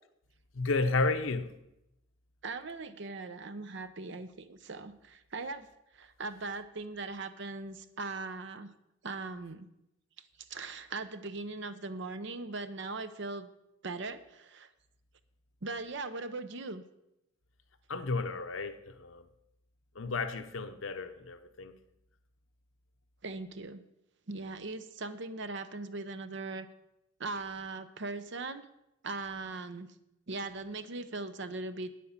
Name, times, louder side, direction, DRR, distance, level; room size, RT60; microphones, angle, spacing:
voice 1, 0.5-1.5 17.9-19.2 19.9-21.8, left 3 dB, 90° left, 0.8 m, -32 dB
voice 2, 2.4-5.7 6.0-8.7 9.0-9.7 10.5-13.5 13.8-14.7 15.6-16.8 23.2-23.8 24.3-26.7 27.2-28.6 29.0-29.9 30.3-31.9, right 3 dB, 65° right, 0.8 m, -39 dB
9.4 x 8.5 x 7.3 m
head